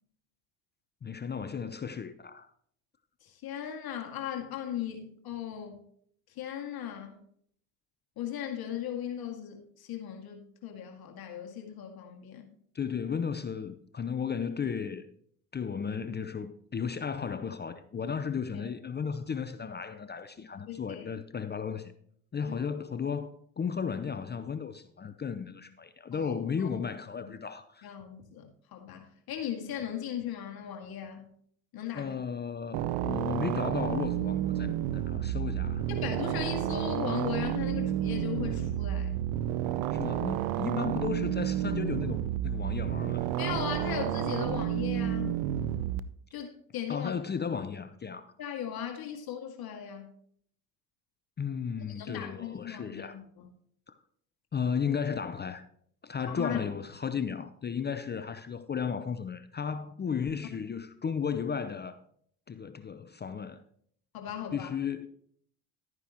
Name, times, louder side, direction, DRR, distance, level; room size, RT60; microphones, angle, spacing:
voice 1, 1.0-2.5 12.7-15.0 15.5-21.9 22.3-27.9 31.9-35.9 39.9-43.3 46.9-48.3 51.4-53.2 53.9-54.0 54.5-55.6 56.0-62.0 62.5-63.6 64.5-65.1, left 6 dB, 25° left, 0.7 m, -34 dB
voice 2, 3.2-5.8 6.4-7.2 8.2-12.5 18.5-18.6 20.7-21.1 22.5-22.6 26.1-26.3 26.6-26.7 27.2-27.3 27.8-31.3 31.7-32.2 35.9-39.1 43.4-45.4 46.3-47.1 48.4-50.1 51.9-53.5 56.3-56.6 64.1-64.8, left 9 dB, 55° left, 2.2 m, -37 dB
sound 1, 32.7-46.0, right 11 dB, 75° right, 0.7 m, -31 dB
12.0 x 9.5 x 3.0 m
supercardioid pair, 80°, 44 cm